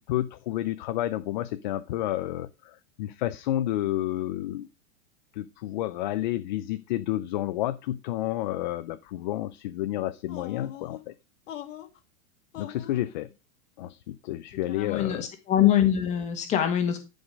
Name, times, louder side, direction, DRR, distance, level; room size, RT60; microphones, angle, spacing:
voice 1, 0.1-4.7 5.4-11.1 12.6-13.3 13.8-15.3, left 14 dB, 40° left, 11 dB, 0.5 m, -30 dB
sound 1, 10.3-11.0 11.5-12.0 12.5-13.0, left 11 dB, 75° left, 1.8 m, -41 dB
voice 2, 14.7-17.0, left 10 dB, 20° left, 6 dB, 1.6 m, -24 dB
11.5 x 5.3 x 5.1 m, 0.28 s
supercardioid pair, 175°, 38 cm